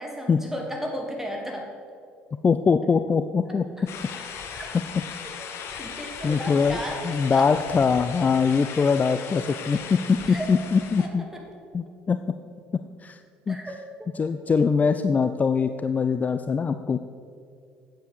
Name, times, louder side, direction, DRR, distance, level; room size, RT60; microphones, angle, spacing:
voice 1, 0.0-1.7 3.8-3.9 4.5-4.7 5.8-7.5 10.3-10.5 11.0-11.4 13.5-14.1, equal, 5° right, 1 dB, 2.8 m, -34 dB
voice 2, 2.4-3.7 6.2-6.8 7.0-11.3 11.7-12.2 13.0-13.2 13.5-13.6 14.2-17.0, left 5 dB, 30° left, 9 dB, 0.5 m, -22 dB
sound 1, 3.9-11.1, left 7 dB, 60° left, 1.2 m, -38 dB
9.6 x 7.8 x 6.7 m, 2.4 s
hypercardioid pair, 60°, 5 cm